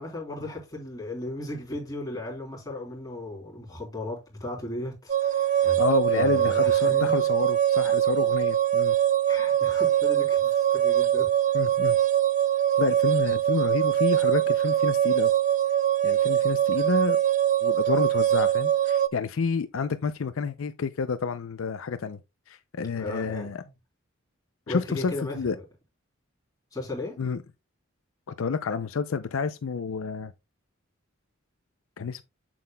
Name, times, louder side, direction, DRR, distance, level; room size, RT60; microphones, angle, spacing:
voice 1, 0.0-5.8 6.1-7.2 9.3-11.3 22.9-23.7 24.7-25.5 26.7-27.1, left 1 dB, 15° left, 3.4 m, -36 dB
sound 1, 5.1-19.1, right 11 dB, 35° right, 0.3 m, -23 dB
voice 2, 5.6-9.0 11.5-12.0 12.8-15.3 16.0-17.2 17.6-22.2 22.5-23.6 24.7-25.6 27.2-27.4 28.4-30.3 32.0-32.2, left 5 dB, 75° left, 0.5 m, -29 dB
7.7 x 7.5 x 2.2 m
head